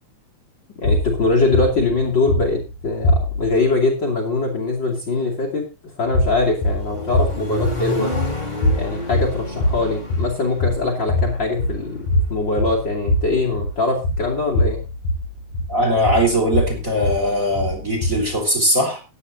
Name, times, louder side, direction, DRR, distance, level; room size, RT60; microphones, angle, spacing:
sound 1, 0.8-3.6 6.1-18.4, left 1 dB, 65° left, 3.6 m, -23 dB
voice 1, 0.8-5.6 6.0-8.1 8.7-14.8, left 3 dB, 35° left, 0 dB, 3.0 m, -22 dB
Accelerating revving vroom, 6.2-12.3, left 2 dB, 15° left, 2.7 m, -31 dB
voice 2, 15.7-19.0, equal, 20° right, 3 dB, 3.9 m, -20 dB
14.5 x 10.0 x 4.0 m, 0.30 s
omnidirectional pair, 4.0 m